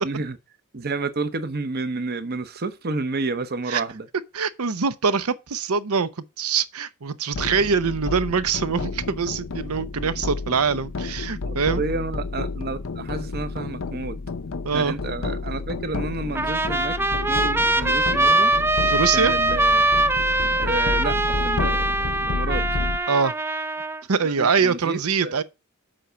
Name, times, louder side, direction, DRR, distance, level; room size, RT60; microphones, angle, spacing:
voice 1, 0.0-0.4 0.7-4.1 11.5-14.2 14.7-17.0 17.3-18.5 19.1-19.9 20.5-22.7 24.2-25.4, right 3 dB, 45° right, 0.9 m, -30 dB
voice 2, 4.3-11.8 14.6-14.9 18.9-19.3 23.1-23.3 24.1-25.4, right 5 dB, 85° right, 0.7 m, -23 dB
sound 1, 7.3-23.0, left 3 dB, 65° left, 0.6 m, -30 dB
Trumpet, 16.3-24.0, right 2 dB, 10° right, 0.4 m, -22 dB
7.6 x 4.6 x 6.8 m
head